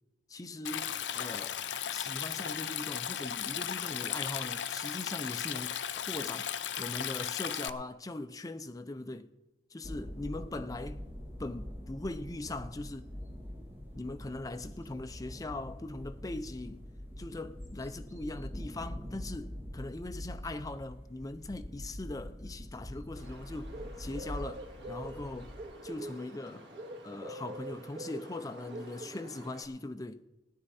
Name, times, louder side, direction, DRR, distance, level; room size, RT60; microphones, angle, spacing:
voice 1, 0.3-1.6 1.9-9.3 9.7-11.1 11.4-13.1 13.9-16.8 17.2-25.5 25.8-26.7 27.0-30.2, left 2 dB, 20° left, 0.5 m, -40 dB
Stream, 0.6-7.7, left 9 dB, 85° left, 0.5 m, -36 dB
sound 1, 9.8-25.6, equal, 15° right, 2.0 m, -44 dB
Bird, 23.2-29.7, right 1 dB, 80° right, 2.0 m, -45 dB
19.5 x 9.3 x 4.2 m
head